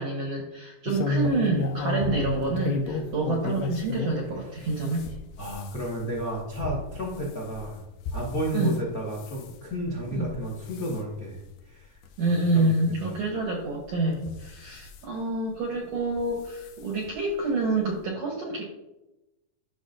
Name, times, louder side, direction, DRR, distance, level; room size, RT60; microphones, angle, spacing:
voice 1, 0.0-5.0 8.5-8.8 10.1-10.3 12.2-18.6, right 2 dB, 65° right, -1 dB, 1.6 m, -27 dB
Arm tabl eslide, 0.9-4.2 4.6-8.8 9.2-9.5 10.1-10.4 10.7-11.0 11.6-11.7 12.0-12.1 13.3-13.4 14.1-15.0 16.1-16.3 16.7-16.8 17.1-17.2, left 3 dB, 80° left, 2.7 m, -32 dB
voice 2, 5.4-7.8 8.1-11.4 11.6-12.0 12.5-13.2, equal, 50° left, -4 dB, 1.0 m, -32 dB
12.5 x 6.1 x 2.6 m, 0.96 s
omnidirectional pair, 4.5 m